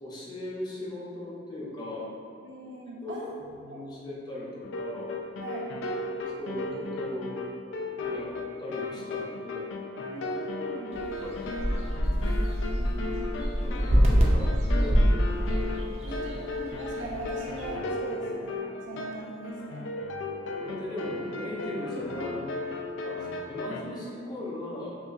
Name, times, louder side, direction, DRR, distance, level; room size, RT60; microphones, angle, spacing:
voice 1, 0.0-2.1 3.0-3.1 3.4-5.2 6.4-7.4 8.0-9.8 11.2-11.6 12.2-12.3 12.7-13.3 13.6-16.2 20.6-22.5 23.0-25.0, left 1 dB, 25° left, -6 dB, 0.7 m, -38 dB
voice 2, 2.4-3.4 3.7-3.8 5.4-5.7 10.1-10.9 16.0-18.6 18.9-19.8, right 2 dB, 80° right, -4 dB, 0.7 m, -40 dB
sound 1, 4.6-23.8, left 2 dB, 80° left, 0.3 m, -35 dB
sound 2, 10.9-17.7, equal, 35° right, 0.5 m, -26 dB
5.4 x 2.3 x 2.4 m, 2.5 s
head